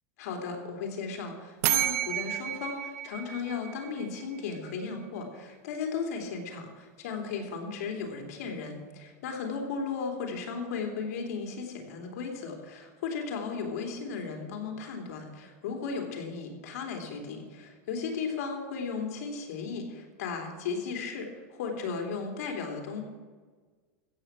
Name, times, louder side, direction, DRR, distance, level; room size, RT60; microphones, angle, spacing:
voice 1, 0.2-23.0, left 5 dB, 75° left, 3 dB, 3.2 m, -35 dB
sound 1, 1.6-4.4, right 13 dB, 75° right, 0.7 m, -31 dB
15.5 x 7.2 x 7.5 m, 1.4 s
supercardioid pair, 160°, 9 cm